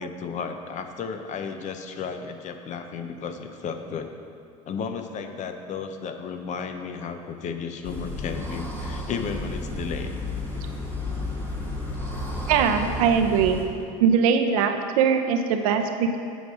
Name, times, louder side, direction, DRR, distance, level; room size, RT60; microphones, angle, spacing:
voice 1, 0.0-4.1 4.7-10.1, left 6 dB, 45° left, 7 dB, 0.8 m, -33 dB
sound 1, 7.8-13.7, left 2 dB, 10° left, 1.8 m, -32 dB
voice 2, 12.5-13.6 14.0-16.2, right 6 dB, 85° right, 6 dB, 0.7 m, -21 dB
8.0 x 5.0 x 6.2 m, 2.5 s
supercardioid pair, 95°, 18 cm